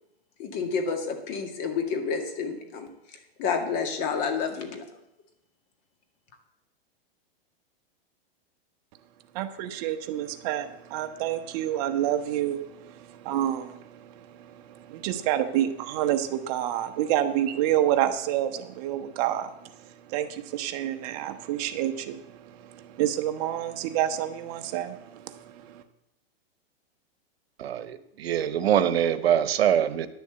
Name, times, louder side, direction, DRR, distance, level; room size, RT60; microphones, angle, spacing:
voice 1, 0.4-4.8, left 5 dB, 40° left, 5 dB, 2.1 m, -30 dB
voice 2, 9.3-25.8, right 12 dB, 40° right, 8 dB, 0.9 m, -29 dB
voice 3, 27.6-30.1, right 9 dB, 80° right, 13 dB, 1.0 m, -24 dB
10.5 x 7.0 x 8.1 m, 0.82 s
hypercardioid pair, 150°, 31 cm